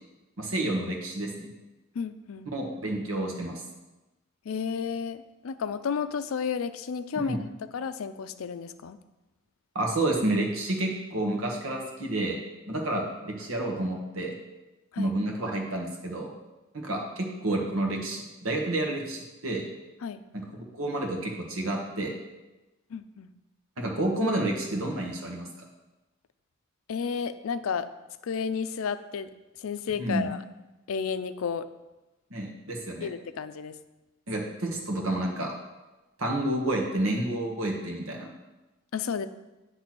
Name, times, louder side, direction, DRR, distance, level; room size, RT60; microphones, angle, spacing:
voice 1, 0.4-1.5 2.5-3.6 7.2-7.4 9.7-12.4 12.7-14.3 15.0-16.3 16.7-19.7 20.3-22.1 23.8-25.5 30.0-30.3 32.3-33.1 34.3-35.5 36.2-38.3, right 1 dB, 90° right, 0 dB, 1.4 m, -30 dB
voice 2, 1.9-2.5 4.5-7.4 7.7-9.0 14.9-15.1 20.0-20.2 22.9-23.3 26.9-27.9 28.2-29.3 29.6-30.4 30.9-31.7 33.0-33.7 38.9-39.3, left 6 dB, 85° left, 12 dB, 0.4 m, -32 dB
8.7 x 3.3 x 6.0 m, 1.1 s
head